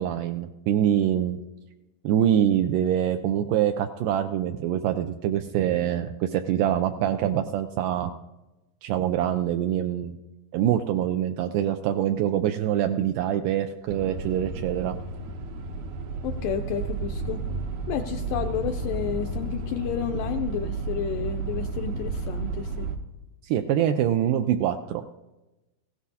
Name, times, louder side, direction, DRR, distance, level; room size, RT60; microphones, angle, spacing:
voice 1, 0.0-1.4 2.0-8.1 8.8-10.2 10.5-15.0 23.4-25.2, right 10 dB, 85° right, 7 dB, 1.9 m, -25 dB
sound 1, 13.9-23.0, right 3 dB, 70° right, 2.0 m, -32 dB
voice 2, 16.2-17.4 17.9-22.9, left 8 dB, 80° left, 6 dB, 1.9 m, -31 dB
19.0 x 16.0 x 2.8 m, 1.1 s
omnidirectional pair, 4.4 m